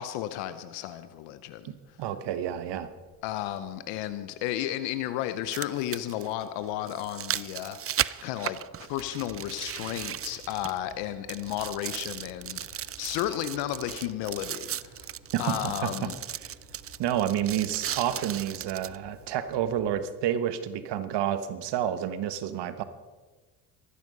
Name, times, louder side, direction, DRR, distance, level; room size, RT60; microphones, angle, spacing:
voice 1, 0.0-1.7 3.2-15.1 15.4-16.2, left 12 dB, 85° left, 12 dB, 0.9 m, -33 dB
sound 1, 2.0-2.1 4.0-4.1 5.3-11.0 11.3-19.0 19.5-19.6, right 10 dB, 35° right, 0.5 m, -36 dB
voice 2, 2.0-2.9 15.3-16.1 16.4-16.5 17.0-22.8, right 10 dB, 70° right, 12 dB, 1.2 m, -29 dB
sound 2, 8.8-19.9, right 1 dB, 90° right, 3.4 m, -54 dB
14.0 x 13.5 x 5.4 m, 1.3 s
supercardioid pair, 60°, 43 cm